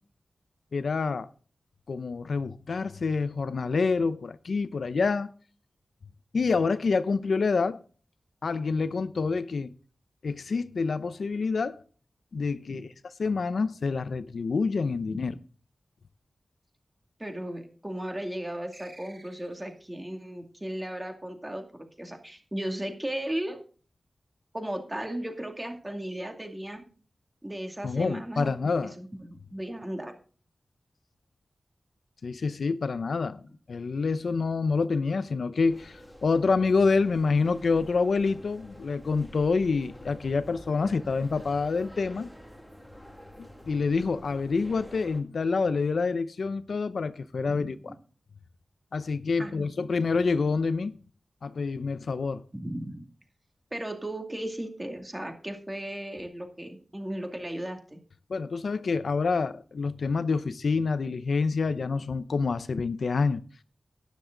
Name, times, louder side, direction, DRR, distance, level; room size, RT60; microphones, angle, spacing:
voice 1, 0.7-1.3 1.9-5.3 6.3-7.8 8.4-9.7 10.2-11.8 12.3-12.9 13.2-15.3 27.8-28.9 32.2-33.4 33.7-42.3 43.4-47.9 48.9-50.9 51.4-52.4 58.3-63.4, left 4 dB, 75° left, 0.7 m, -27 dB
voice 2, 17.2-23.6 24.5-26.8 27.4-30.1 47.5-47.7 49.4-49.7 52.5-53.1 53.7-58.0, right 1 dB, 15° right, 2.4 m, -36 dB
sound 1, 18.7-19.9, right 2 dB, 45° right, 4.9 m, -53 dB
sound 2, 35.7-45.2, equal, ahead, 2.2 m, -48 dB
12.5 x 10.5 x 3.9 m
wide cardioid pair, 115°, 0 cm